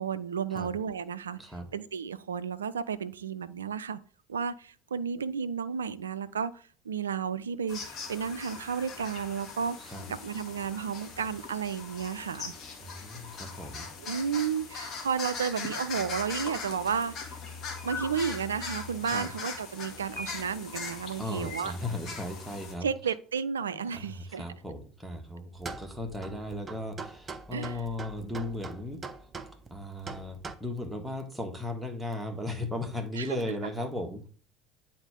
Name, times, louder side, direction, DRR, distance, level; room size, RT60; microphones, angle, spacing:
voice 1, 0.0-1.4 1.7-4.0 4.3-9.9 10.2-12.5 14.0-17.4 17.8-21.7 22.8-24.4 27.5-27.8 33.2-33.4, right 7 dB, 80° right, 0.4 m, -32 dB
sound 1, 7.7-22.7, left 5 dB, 45° left, 1.8 m, -40 dB
voice 2, 12.8-13.9 19.0-19.3 21.2-22.9 23.7-29.0 29.7-34.3, left 1 dB, 5° right, 1.7 m, -36 dB
sound 2, 25.6-30.5, right 4 dB, 25° right, 0.7 m, -42 dB
8.8 x 4.2 x 3.6 m
figure-of-eight pair, 65°, 0 cm